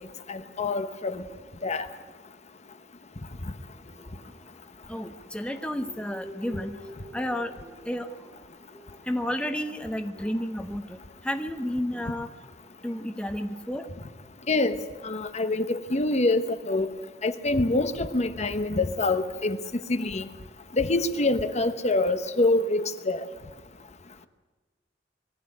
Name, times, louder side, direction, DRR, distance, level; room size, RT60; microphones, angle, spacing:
voice 1, 0.3-1.2 1.6-1.9 14.5-14.8 15.0-16.9 17.2-19.6 19.9-20.2 20.8-23.2, left 2 dB, 40° left, 1.0 m, -25 dB
sound 1, 3.3-4.8 5.4-9.3 9.9-10.4, left 1 dB, 20° left, 6.5 m, -48 dB
voice 2, 4.9-6.8 7.1-7.5 7.9-8.1 9.1-11.0 11.2-12.3 12.8-13.9, equal, 5° left, 0.8 m, -31 dB
22.0 x 14.5 x 9.7 m
head